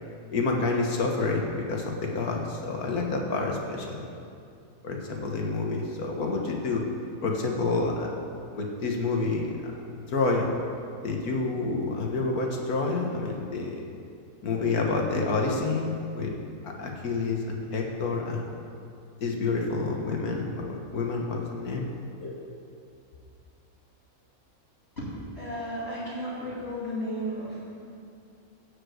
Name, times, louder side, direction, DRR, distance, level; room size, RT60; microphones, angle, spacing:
voice 1, 0.3-4.1 4.8-6.9 7.2-8.2 8.5-9.5 10.1-10.5 11.0-13.9 14.4-16.3 16.6-18.6 19.2-21.9, left 3 dB, 80° left, 1 dB, 1.8 m, -28 dB
voice 2, 25.0-27.7, equal, 40° left, -9 dB, 2.9 m, -34 dB
14.5 x 5.0 x 7.9 m, 2.5 s
omnidirectional pair, 1.6 m